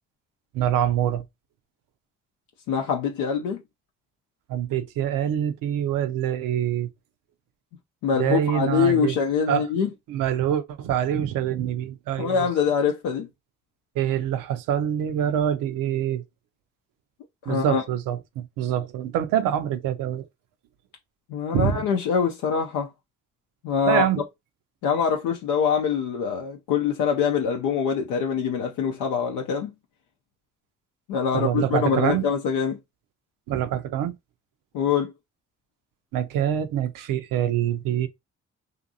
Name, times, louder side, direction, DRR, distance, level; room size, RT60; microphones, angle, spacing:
voice 1, 0.5-1.2 4.5-6.9 8.1-9.1 9.5-9.7 10.1-12.5 14.0-16.2 17.5-20.2 21.5-21.8 23.9-24.2 31.3-32.2 33.5-34.2 36.1-38.1, right 10 dB, 75° right, 0.5 m, -25 dB
voice 2, 2.7-3.6 8.0-9.9 12.2-13.3 17.4-17.8 21.3-22.9 23.6-24.1 24.8-29.7 31.1-32.8 34.7-35.1, left 6 dB, 80° left, 0.5 m, -24 dB
2.5 x 2.5 x 2.6 m
hypercardioid pair, 40°, 34 cm